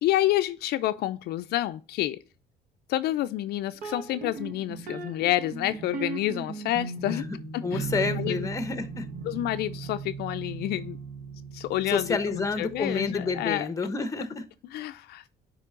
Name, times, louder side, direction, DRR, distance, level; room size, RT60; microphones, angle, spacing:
voice 1, 0.0-2.2 2.9-7.2 7.5-7.8 8.1-8.5 9.3-11.0 11.5-13.7 14.7-15.2, left 14 dB, 70° left, 0.4 m, -28 dB
sound 1, 3.8-13.5, right 4 dB, 55° right, 1.2 m, -38 dB
voice 2, 7.6-9.1 11.9-14.4, left 4 dB, 20° left, 0.8 m, -29 dB
9.3 x 3.2 x 3.7 m
cardioid pair, 110°, 17 cm